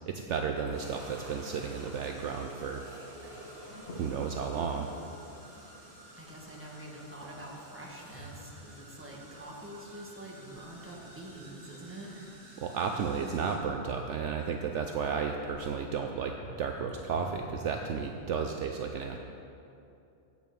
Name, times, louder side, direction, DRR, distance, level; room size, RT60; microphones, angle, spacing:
voice 1, 0.1-2.8 4.0-4.9 12.6-19.2, right 6 dB, 70° right, 4 dB, 0.8 m, -33 dB
sound 1, 0.5-9.5 9.7-9.8 10.4-10.5 13.1-13.2, right 1 dB, 85° right, 2.5 m, -51 dB
sound 2, 0.7-13.6, right 1 dB, 25° right, 2.7 m, -54 dB
sound 3, 2.8-18.2, right 1 dB, 55° left, 1.7 m, -52 dB
voice 2, 6.2-12.3, right 1 dB, 10° right, -3 dB, 1.3 m, -46 dB
9.0 x 6.3 x 6.9 m, 2.7 s
omnidirectional pair, 1.4 m